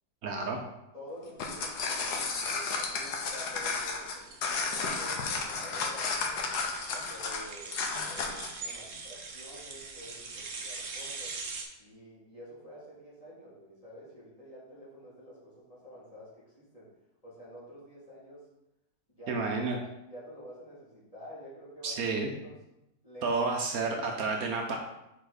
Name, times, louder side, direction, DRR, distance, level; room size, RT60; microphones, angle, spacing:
voice 1, 0.2-0.6 19.3-19.8 21.8-22.3 23.2-24.8, right 3 dB, 70° right, 2 dB, 1.1 m, -30 dB
voice 2, 0.9-6.5 6.9-7.8 8.0-11.4 11.8-16.9 17.2-18.5 19.1-19.4 19.7-22.0 22.4-22.5 23.0-23.3, equal, 20° left, -9 dB, 2.7 m, -49 dB
sound 1, 1.2-8.6, left 4 dB, 85° left, 1.4 m, -33 dB
sound 2, 1.7-11.6, right 4 dB, 50° right, 1.1 m, -43 dB
6.2 x 4.8 x 4.0 m, 0.88 s
omnidirectional pair, 1.7 m